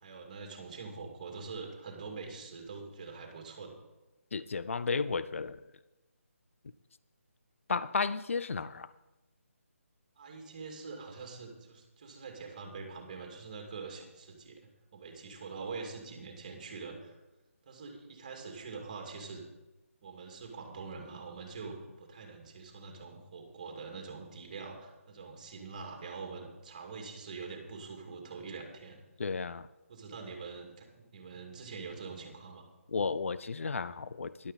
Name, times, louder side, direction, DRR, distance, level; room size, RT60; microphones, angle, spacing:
voice 1, 0.0-3.7 10.2-14.6 14.9-17.2 17.7-19.4 20.0-29.0 29.9-32.7, right 4 dB, 30° right, 2 dB, 2.2 m, -44 dB
voice 2, 4.3-5.6 7.7-8.9 29.2-29.7 32.9-34.5, left 4 dB, 65° left, 15 dB, 0.5 m, -33 dB
13.5 x 11.5 x 4.1 m, 1.0 s
hypercardioid pair, 170°, 8 cm